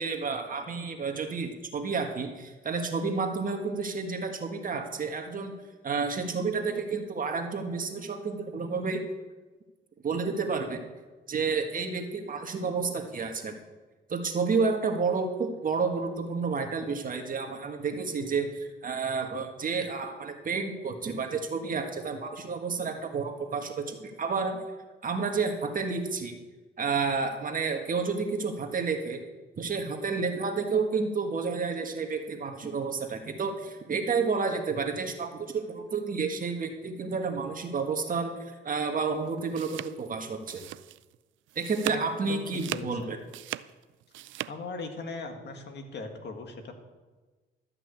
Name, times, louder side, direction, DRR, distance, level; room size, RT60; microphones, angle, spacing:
voice 1, 0.0-5.6 5.8-9.0 10.0-10.8 11.3-13.5 14.1-24.6 25.0-26.4 26.8-29.2 29.6-40.7 41.5-43.2, right 4 dB, 45° right, 4 dB, 1.6 m, -30 dB
sound 1, 39.3-41.2 41.5-42.1 42.5-44.5, right 15 dB, 75° right, 0.4 m, -38 dB
voice 2, 41.9-43.1 44.5-46.7, left 3 dB, 60° left, 5 dB, 1.9 m, -39 dB
13.0 x 5.9 x 8.3 m, 1.3 s
cardioid pair, 90°, 20 cm